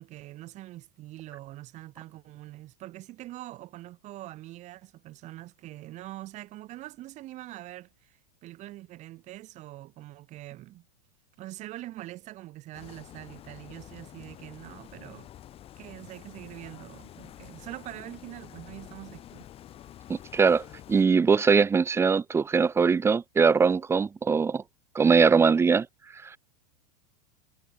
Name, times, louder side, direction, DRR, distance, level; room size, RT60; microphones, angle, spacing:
voice 1, 0.0-10.8 11.4-15.3 15.8-19.4, right 16 dB, 35° right, 7.2 m, -44 dB
sound 1, 12.7-21.0, left 12 dB, 30° left, 3.9 m, -48 dB
voice 2, 20.1-20.6 20.9-24.6 24.9-25.9 26.2-26.3, right 5 dB, 10° right, 1.3 m, -21 dB
supercardioid pair, 145°, 21 cm